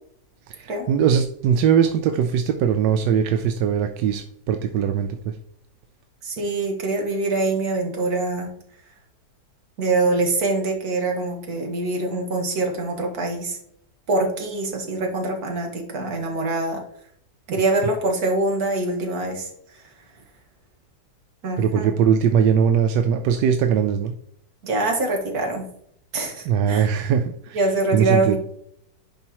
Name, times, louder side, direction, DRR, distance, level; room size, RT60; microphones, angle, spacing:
voice 1, 0.5-5.4 21.6-24.1 26.5-27.6 27.9-28.4, right 8 dB, 85° right, 6 dB, 1.2 m, -20 dB
voice 2, 6.2-8.5 9.8-13.6 14.1-16.8 17.5-19.9 21.4-21.9 24.6-25.7 26.1-26.9 27.5-28.4, right 2 dB, 60° right, 2 dB, 2.0 m, -24 dB
10.5 x 4.3 x 3.0 m, 0.69 s
omnidirectional pair, 1.9 m